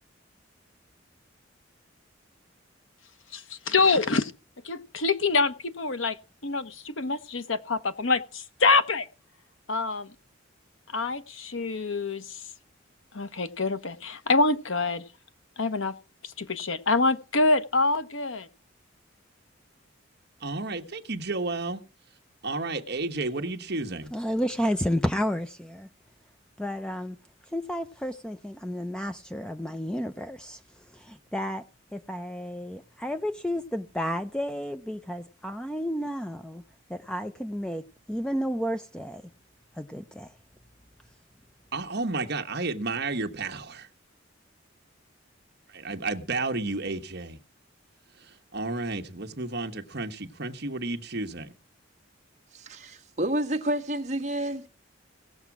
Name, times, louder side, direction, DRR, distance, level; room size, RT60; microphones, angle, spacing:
voice 1, 3.3-4.3 4.6-6.2 6.4-9.1 9.7-10.1 10.9-12.4 13.1-15.0 15.6-15.9 16.4-18.5, left 3 dB, 75° left, 1.1 m, -26 dB
voice 2, 20.4-21.8 22.4-24.1 41.7-43.9 45.7-47.4 48.2-51.5, right 3 dB, 55° right, 1.3 m, -32 dB
voice 3, 24.1-25.9 26.6-27.2 27.5-30.6 30.9-31.6 31.9-36.6 36.9-37.8 38.1-39.2 39.8-40.3, equal, 5° left, 0.6 m, -31 dB
voice 4, 52.5-54.7, right 1 dB, 35° right, 1.4 m, -29 dB
18.0 x 7.1 x 6.0 m
head